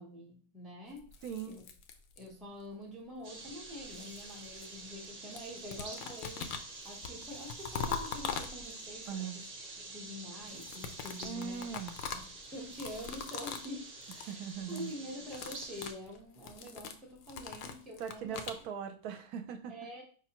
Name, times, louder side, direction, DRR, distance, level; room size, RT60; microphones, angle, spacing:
voice 1, 0.0-1.1 1.5-1.7 2.2-9.5 9.8-11.7 12.0-12.2 12.5-18.4 19.7-20.0, left 1 dB, ahead, -1 dB, 0.5 m, -46 dB
sound 1, 1.0-2.5 3.5-5.1 5.4-9.0 10.4-13.8 14.0-14.3 14.6-14.9 15.2-18.6, left 6 dB, 70° left, 0.8 m, -42 dB
voice 2, 1.2-1.6 9.1-9.4 11.2-11.9 14.3-14.9 18.0-19.7, right 8 dB, 75° right, 6 dB, 1.0 m, -40 dB
sound 2, 3.2-15.9, right 3 dB, 40° right, 0.8 m, -47 dB
5.0 x 3.4 x 2.9 m, 0.43 s
omnidirectional pair, 1.7 m